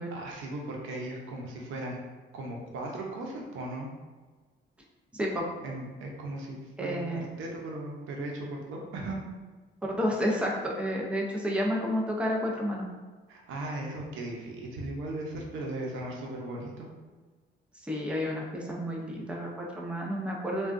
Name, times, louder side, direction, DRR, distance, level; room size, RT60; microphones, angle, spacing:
voice 1, 0.1-2.0 2.3-3.9 5.6-9.2 13.3-16.9, right 1 dB, 85° right, -1 dB, 0.7 m, -37 dB
voice 2, 5.1-5.5 6.8-7.3 9.8-12.8 17.9-20.7, equal, 5° right, -2 dB, 0.6 m, -30 dB
3.6 x 2.3 x 2.5 m, 1.3 s
cardioid pair, 90°, 20 cm